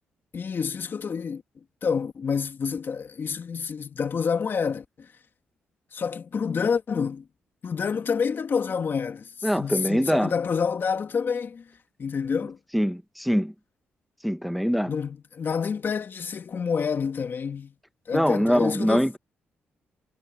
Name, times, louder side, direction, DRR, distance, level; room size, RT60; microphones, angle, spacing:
voice 1, 0.3-1.4 1.8-5.1 5.9-7.3 7.6-11.7 12.0-12.6 14.8-17.7 18.1-19.1, left 6 dB, 50° left, 2.6 m, -28 dB
voice 2, 9.4-10.3 12.7-13.5 14.2-14.9 18.1-19.2, equal, ahead, 1.3 m, -23 dB
supercardioid pair, 65°, 5 cm